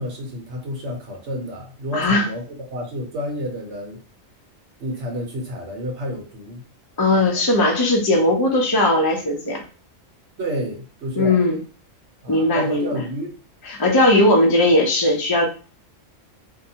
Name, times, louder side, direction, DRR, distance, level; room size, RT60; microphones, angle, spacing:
voice 1, 0.0-4.0 4.8-6.6 10.4-11.4 12.2-13.4, equal, 60° right, 0 dB, 1.0 m, -30 dB
voice 2, 1.9-2.2 7.0-9.6 11.2-11.6 12.3-13.0 13.7-15.4, left 1 dB, 40° left, 0 dB, 0.3 m, -18 dB
2.6 x 2.2 x 2.7 m, 0.37 s
omnidirectional pair, 1.4 m